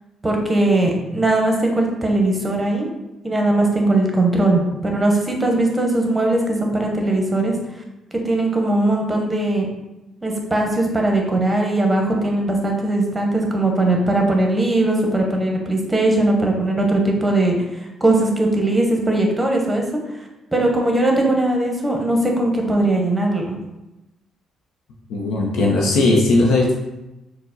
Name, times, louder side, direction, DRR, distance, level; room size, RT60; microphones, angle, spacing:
voice 1, 0.2-2.9 3.2-7.5 8.2-9.7 10.2-19.8 20.5-23.6, right 2 dB, 15° right, 1 dB, 0.8 m, -19 dB
voice 2, 25.1-26.7, left 2 dB, 85° left, -2 dB, 0.6 m, -17 dB
4.5 x 2.1 x 3.9 m, 0.98 s
cardioid pair, 90°, 0 cm